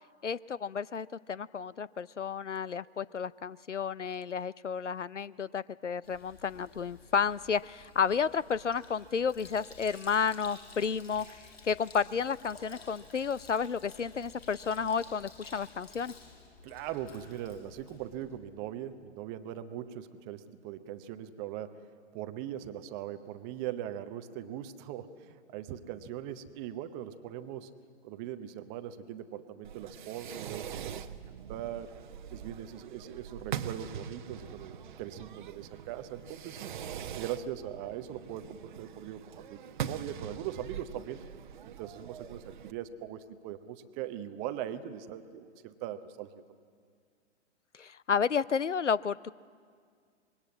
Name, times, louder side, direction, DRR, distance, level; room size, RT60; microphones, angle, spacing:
voice 1, 0.2-16.1 47.8-49.3, left 6 dB, 85° left, 20 dB, 0.6 m, -31 dB
Sink (filling or washing), 6.0-18.4, left 4 dB, 60° left, 7.5 m, -53 dB
voice 2, 16.6-21.9 22.1-27.7 28.0-31.9 32.3-36.7 37.1-41.2 41.6-46.4, right 11 dB, 15° right, 10 dB, 0.6 m, -40 dB
Fireworks, 29.6-42.7, right 8 dB, 45° right, 0.9 m, -43 dB
25.5 x 21.5 x 8.6 m, 2.1 s
figure-of-eight pair, 120°, 35 cm